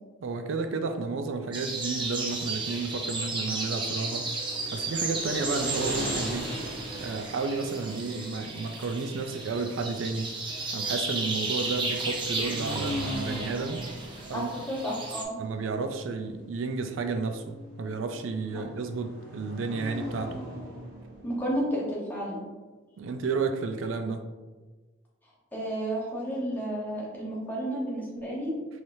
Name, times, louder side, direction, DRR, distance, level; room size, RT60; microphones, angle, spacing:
voice 1, 0.2-4.3 4.7-6.5 6.9-10.3 10.7-13.9 14.3-14.6 15.4-20.4 23.0-24.2, right 4 dB, 85° right, 6 dB, 0.4 m, -32 dB
sound 1, 1.5-15.2, right 3 dB, 25° right, 0.6 m, -34 dB
sound 2, 3.8-21.6, equal, 50° right, 1.3 m, -40 dB
voice 2, 14.3-15.4 18.5-18.6 21.2-22.4 25.5-28.5, equal, 10° left, -6 dB, 1.1 m, -31 dB
4.8 x 2.9 x 2.7 m, 1.3 s
head